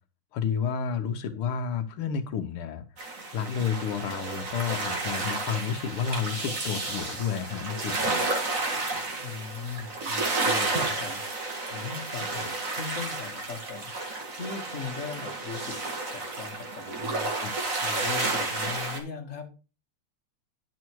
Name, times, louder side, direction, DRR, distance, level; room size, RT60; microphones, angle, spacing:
voice 1, 0.3-2.8 3.3-8.1 17.4-17.5, left 7 dB, 85° left, 1.9 m, -30 dB
sound 1, 3.0-19.0, right 2 dB, 40° right, 2.2 m, -31 dB
voice 2, 9.2-15.8 16.1-19.5, left 5 dB, 40° left, 1.9 m, -39 dB
10.5 x 5.6 x 4.6 m
omnidirectional pair, 2.3 m